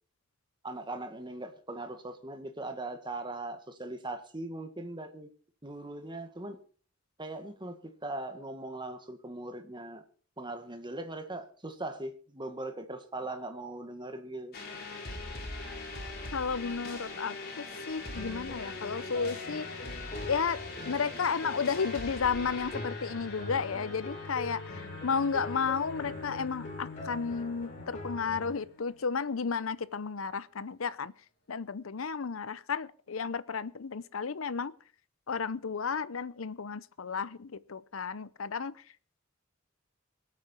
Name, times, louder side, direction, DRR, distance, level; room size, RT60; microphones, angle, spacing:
voice 1, 0.6-5.3 5.6-6.6 7.2-10.0 10.4-14.6, right 2 dB, 25° right, 1.8 m, -40 dB
sound 1, 14.5-29.3, left 3 dB, 50° left, 4.6 m, -42 dB
voice 2, 16.3-19.9 20.2-20.6 20.8-31.1 31.5-34.7 35.3-38.8, left 5 dB, 85° left, 0.7 m, -33 dB
sound 2, 18.2-28.6, left 2 dB, 35° left, 3.7 m, -43 dB
24.0 x 8.7 x 4.5 m
head